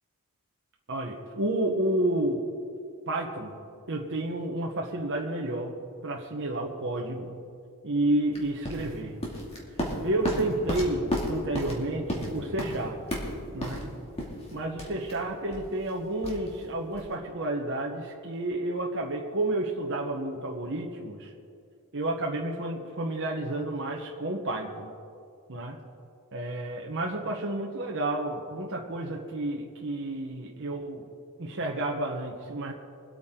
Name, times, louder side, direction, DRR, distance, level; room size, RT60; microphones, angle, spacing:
voice 1, 0.9-2.5 3.1-3.6 3.9-7.4 7.8-9.2 10.0-13.2 13.5-13.9 14.5-21.3 21.9-24.9 25.5-25.8 26.3-31.1 31.4-32.7, right 1 dB, 55° right, 0 dB, 1.1 m, -30 dB
sound 1, 8.3-17.1, equal, 30° left, 2.5 m, -34 dB
23.5 x 8.6 x 3.8 m, 2.5 s
head